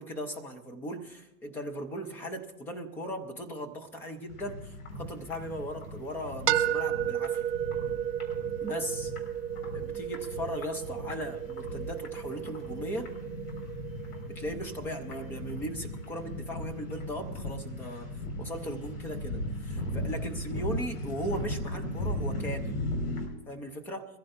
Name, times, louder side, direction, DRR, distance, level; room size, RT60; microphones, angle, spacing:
voice 1, 0.0-7.5 8.6-9.1 9.7-13.1 14.3-18.1 18.4-22.9 23.5-24.0, equal, 5° left, 4 dB, 0.4 m, -38 dB
sound 1, 4.3-23.3, left 1 dB, 75° left, 5.0 m, -37 dB
sound 2, 6.5-16.3, right 11 dB, 50° right, 1.3 m, -34 dB
22.5 x 15.0 x 2.5 m, 0.95 s
hypercardioid pair, 135°, 46 cm